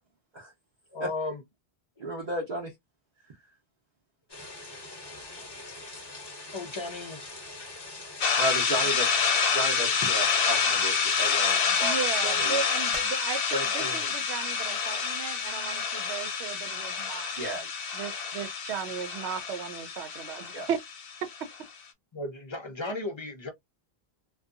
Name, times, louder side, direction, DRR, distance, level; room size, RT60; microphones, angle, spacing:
voice 1, 0.9-1.4 2.0-2.1 6.5-7.2 8.8-8.9 22.1-23.5, left 2 dB, 45° left, 0.3 m, -35 dB
voice 2, 2.0-2.7 8.4-9.1 9.5-12.6 13.5-14.1 17.4-17.7 20.5-20.7, right 1 dB, 45° right, 0.7 m, -33 dB
sound 1, 4.3-11.4, left 2 dB, 25° left, 0.7 m, -43 dB
sound 2, 8.2-21.5, left 6 dB, 65° left, 0.7 m, -28 dB
voice 3, 11.8-17.6 17.9-20.8, right 8 dB, 90° right, 0.9 m, -36 dB
sound 3, 12.9-13.9 15.4-15.5, equal, 10° right, 0.5 m, -41 dB
2.6 x 2.3 x 2.4 m
omnidirectional pair, 1.1 m